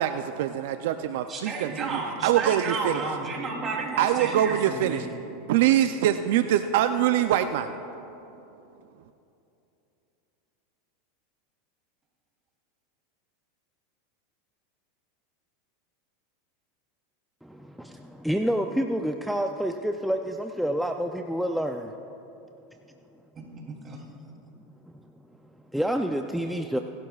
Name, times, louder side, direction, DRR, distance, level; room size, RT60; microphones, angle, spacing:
voice 1, 0.0-3.0 4.0-5.1 5.5-7.7, right 11 dB, 70° right, 9 dB, 0.4 m, -24 dB
voice 2, 1.3-5.1 23.3-24.0, right 3 dB, 30° right, -1 dB, 3.0 m, -32 dB
voice 3, 17.4-21.9 25.7-26.8, equal, ahead, 4 dB, 0.5 m, -28 dB
23.0 x 12.0 x 2.4 m, 2.9 s
hypercardioid pair, 115°, 0 cm